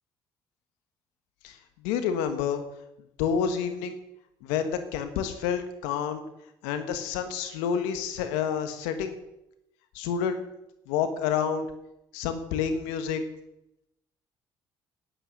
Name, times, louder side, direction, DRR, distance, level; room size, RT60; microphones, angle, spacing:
voice 1, 1.8-2.6 3.2-3.9 4.4-6.2 6.6-9.1 9.9-10.4 10.9-11.7 12.1-13.2, left 7 dB, 85° left, 8 dB, 1.5 m, -28 dB
11.5 x 9.8 x 6.6 m, 0.85 s
hypercardioid pair, 55°, 11 cm